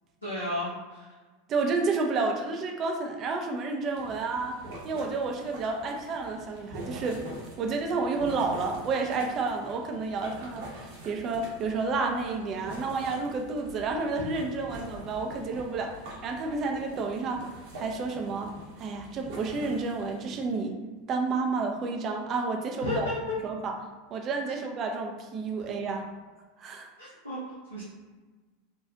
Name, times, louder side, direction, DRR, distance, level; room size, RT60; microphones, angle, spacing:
voice 1, 0.2-1.0 22.8-23.4 24.5-24.6 27.0-27.8, left 1 dB, 85° left, -9 dB, 0.8 m, -33 dB
voice 2, 1.5-4.6 4.8-7.2 7.6-15.9 16.2-17.5 17.8-18.5 18.8-20.8 21.1-23.1 23.4-23.7 24.1-26.0 26.6-26.9, right 4 dB, 35° right, 2 dB, 0.5 m, -30 dB
sound 1, 3.9-20.4, right 1 dB, 50° right, 0.9 m, -45 dB
3.7 x 2.4 x 2.7 m, 1.3 s
figure-of-eight pair, 80°, 0 cm